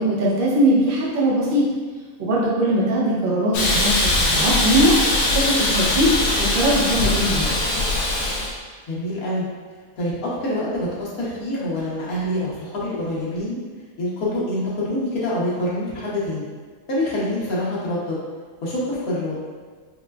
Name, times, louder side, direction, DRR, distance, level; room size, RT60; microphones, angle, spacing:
voice 1, 0.0-1.6 2.2-5.0 5.3-7.6, right 1 dB, 55° right, -5 dB, 0.6 m, -20 dB
voice 2, 2.7-3.1 8.9-9.5 10.0-13.6 14.0-16.5 16.9-18.2 18.6-19.4, left 1 dB, 80° left, -7 dB, 1.3 m, -26 dB
Hiss, 3.5-8.5, left 2 dB, 60° left, 0.7 m, -21 dB
4.2 x 2.2 x 2.3 m, 1.5 s
omnidirectional pair, 1.5 m